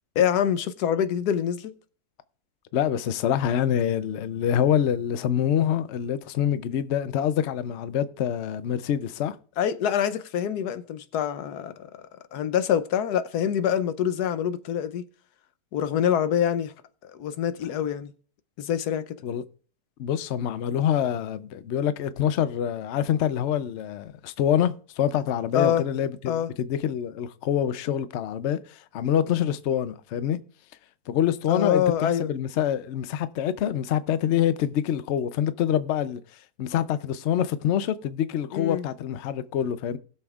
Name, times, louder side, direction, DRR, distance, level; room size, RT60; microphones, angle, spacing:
voice 1, 0.2-1.7 9.6-11.9 12.3-15.0 15.7-16.7 17.1-18.1 18.6-19.0 25.5-25.8 26.3-26.5 31.5-32.3 38.5-38.8, left 9 dB, 90° left, 1.2 m, -25 dB
voice 2, 2.7-9.4 19.2-19.4 20.0-30.4 31.1-36.2 36.6-40.0, left 10 dB, 60° left, 0.8 m, -26 dB
20.0 x 7.0 x 2.4 m
omnidirectional pair, 1.6 m